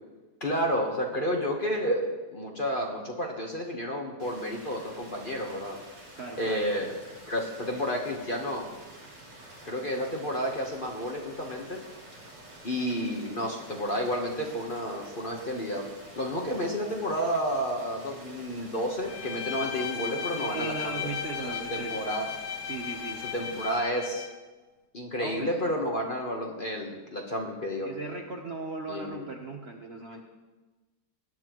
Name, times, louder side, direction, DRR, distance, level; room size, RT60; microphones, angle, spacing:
voice 1, 0.4-2.0 2.3-5.8 6.4-6.9 7.3-8.7 9.6-11.8 12.6-15.9 16.2-21.1 21.4-22.3 23.3-24.3 24.9-27.9 28.9-29.3, equal, 35° left, 1 dB, 1.2 m, -31 dB
sound 1, 4.2-23.8, right 1 dB, 60° right, 3.1 m, -49 dB
voice 2, 6.2-6.6 20.3-22.0 22.6-23.2 25.2-25.5 27.8-30.2, right 3 dB, 45° right, 1 dB, 1.0 m, -38 dB
Bowed string instrument, 19.1-24.4, left 8 dB, 65° left, 1.3 m, -36 dB
18.0 x 11.0 x 3.1 m, 1.2 s
omnidirectional pair, 1.9 m